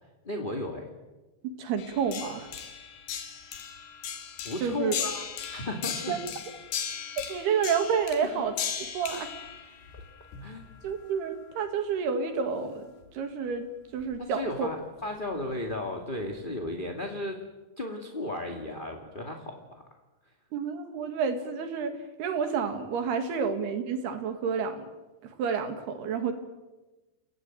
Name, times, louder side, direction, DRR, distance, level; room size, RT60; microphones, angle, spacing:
voice 1, 0.2-0.9 4.4-5.2 5.5-6.1 8.2-8.4 9.9-10.0 10.4-10.7 14.2-17.4 17.8-19.8, left 2 dB, 20° left, 2 dB, 1.7 m, -35 dB
voice 2, 1.4-2.5 4.6-5.0 6.1-6.2 7.3-8.6 8.9-9.3 10.8-12.9 13.1-13.7 13.9-14.7 20.5-24.9 25.2-26.3, right 6 dB, 75° right, 7 dB, 4.0 m, -29 dB
sound 1, 1.8-10.9 13.0-13.1 14.0-14.2 15.3-15.7 16.4-16.5, left 8 dB, 80° left, 4.4 m, -37 dB
30.0 x 18.0 x 9.2 m, 1.1 s
omnidirectional pair, 4.7 m